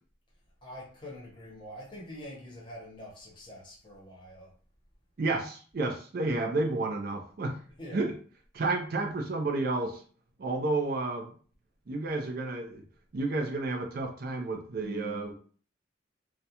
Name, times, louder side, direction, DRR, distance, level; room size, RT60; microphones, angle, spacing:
voice 1, 0.6-4.5 7.8-8.1, left 1 dB, 25° left, 0.8 m, -45 dB
voice 2, 5.2-7.5 7.9-8.1 8.5-10.0 10.4-11.3 11.9-12.8 13.1-15.3, right 2 dB, 50° right, 0.4 m, -31 dB
2.4 x 2.1 x 2.8 m
head